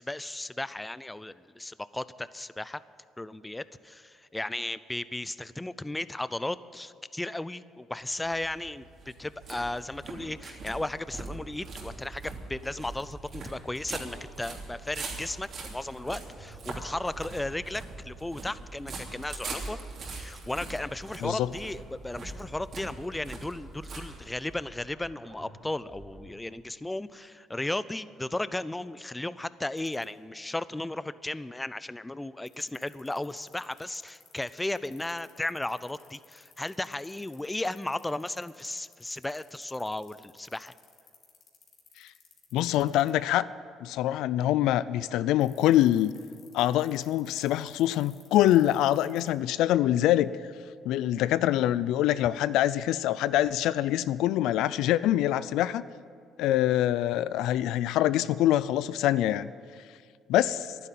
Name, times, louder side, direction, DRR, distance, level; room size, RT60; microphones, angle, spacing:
voice 1, 0.0-2.8 3.2-8.8 9.2-19.8 20.1-40.7, left 2 dB, 10° left, 16 dB, 0.4 m, -35 dB
sound 1, 8.1-24.6, right 3 dB, 55° right, 3.0 m, -42 dB
sound 2, 11.6-26.4, right 2 dB, 40° right, 3.5 m, -50 dB
voice 2, 21.2-21.5 42.0-42.1 42.5-43.5 43.8-46.1 46.5-50.3 50.9-55.8 56.4-59.5 60.3-60.8, left 13 dB, 80° left, 17 dB, 0.3 m, -25 dB
sound 3, 29.8-30.0 32.5-43.1 45.4-49.3, left 7 dB, 60° left, 2.7 m, -56 dB
11.5 x 10.0 x 9.1 m, 2.2 s
cardioid pair, 90°, 0 cm